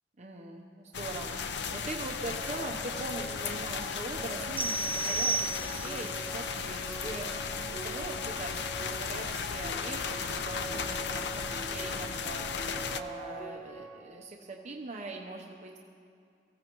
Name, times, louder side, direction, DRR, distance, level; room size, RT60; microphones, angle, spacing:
voice 1, 0.2-8.6 8.9-12.7 12.9-15.8, right 2 dB, 40° right, 0 dB, 0.9 m, -42 dB
sound 1, 0.9-13.0, left 6 dB, 70° left, 0.6 m, -36 dB
sound 2, 2.3-14.0, right 1 dB, 25° left, 1.4 m, -44 dB
sound 3, 4.6-6.1, right 3 dB, 10° right, 0.3 m, -32 dB
23.5 x 15.5 x 3.1 m, 2.4 s
head